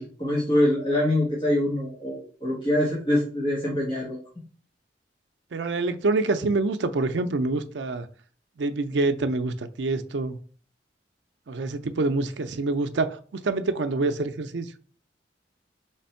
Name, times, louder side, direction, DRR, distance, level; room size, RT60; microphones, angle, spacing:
voice 1, 0.0-4.2, left 1 dB, 30° left, 1.2 m, -24 dB
voice 2, 5.5-8.1 8.6-10.4 11.5-14.7, right 3 dB, 75° right, 0.5 m, -26 dB
3.5 x 3.2 x 4.3 m
head